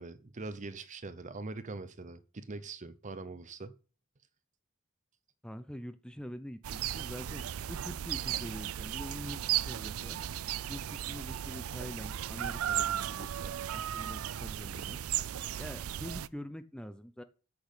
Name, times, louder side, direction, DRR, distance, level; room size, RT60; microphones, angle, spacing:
voice 1, 0.0-3.7, right 3 dB, 35° right, 0.7 m, -42 dB
voice 2, 5.4-10.2 10.7-15.0 15.6-17.2, equal, 5° left, 0.7 m, -45 dB
sound 1, 6.6-16.3, right 11 dB, 90° right, 0.4 m, -36 dB
8.4 x 6.2 x 8.2 m
head